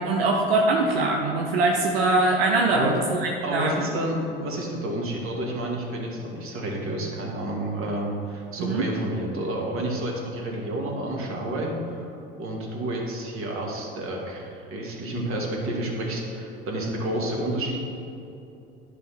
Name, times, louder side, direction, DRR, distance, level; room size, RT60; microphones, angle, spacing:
voice 1, 0.0-3.9 8.6-8.9, right 2 dB, 85° right, 0 dB, 0.8 m, -23 dB
voice 2, 3.4-12.1 12.4-17.8, right 1 dB, 50° right, 0 dB, 2.1 m, -30 dB
10.5 x 5.5 x 4.2 m, 2.8 s
hypercardioid pair, 75°, 29 cm